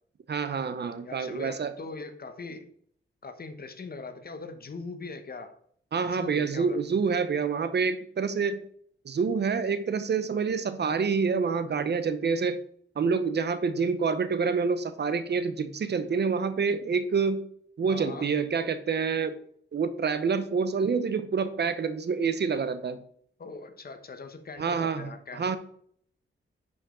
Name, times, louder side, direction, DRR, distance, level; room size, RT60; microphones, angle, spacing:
voice 1, 0.3-1.7 5.9-8.6 9.0-12.6 13.0-17.4 17.8-19.4 19.7-23.0 24.6-25.6, right 5 dB, 55° right, 12 dB, 0.8 m, -27 dB
voice 2, 1.0-2.7 3.2-5.6 6.0-6.8 17.9-18.3 23.4-25.6, left 3 dB, 50° left, 8 dB, 1.1 m, -41 dB
10.0 x 5.2 x 3.8 m, 0.63 s
wide cardioid pair, 105°, 20 cm